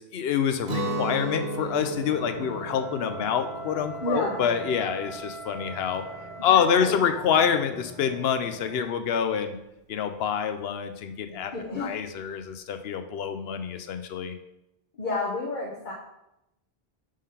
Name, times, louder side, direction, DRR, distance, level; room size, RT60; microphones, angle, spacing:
voice 1, 0.0-6.0 6.4-9.6 9.9-11.5 11.8-14.4, left 7 dB, 80° left, 8 dB, 0.8 m, -26 dB
Guitar, 0.6-6.5, right 2 dB, 45° right, 0.9 m, -35 dB
sound 1, 1.7-8.9, right 2 dB, 20° right, 0.9 m, -46 dB
Wind instrument woodwind instrument, 2.0-6.7, right 3 dB, 80° right, 1.0 m, -42 dB
voice 2, 4.0-4.4 6.5-7.3 11.3-11.9 14.9-15.9, left 2 dB, 50° left, -3 dB, 1.0 m, -31 dB
5.0 x 3.8 x 5.5 m, 0.87 s
omnidirectional pair, 1.0 m